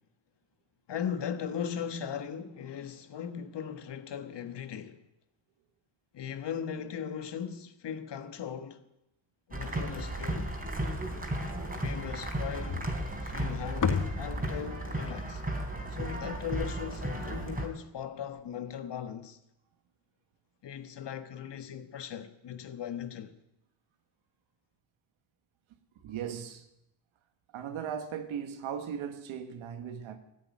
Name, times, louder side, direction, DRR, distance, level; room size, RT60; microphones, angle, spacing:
voice 1, 0.9-5.0 6.1-8.8 9.5-10.5 11.7-12.9 13.2-15.4 15.9-19.4 20.6-23.3, left 8 dB, 60° left, 1.4 m, -38 dB
sound 1, 9.5-17.7, right 1 dB, 20° right, 3.5 m, -34 dB
sound 2, 12.7-17.0, left 7 dB, 40° left, 1.0 m, -35 dB
voice 2, 26.0-26.7 27.5-30.2, right 8 dB, 85° right, 1.6 m, -37 dB
13.5 x 8.6 x 9.5 m
cardioid pair, 70°, 46 cm